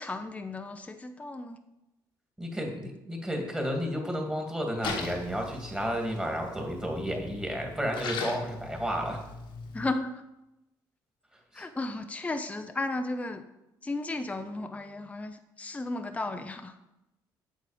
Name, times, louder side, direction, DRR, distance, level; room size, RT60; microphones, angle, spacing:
voice 1, 0.0-1.6 9.7-10.1 11.5-13.4 13.8-16.7, left 2 dB, 15° left, 7 dB, 0.7 m, -34 dB
voice 2, 2.4-9.2 11.5-11.6, equal, 10° right, 1 dB, 2.4 m, -32 dB
Splash splatter, 4.8-9.9, left 4 dB, 75° left, 1.5 m, -39 dB
8.2 x 6.5 x 5.1 m, 0.92 s
cardioid pair, 90°, 8 cm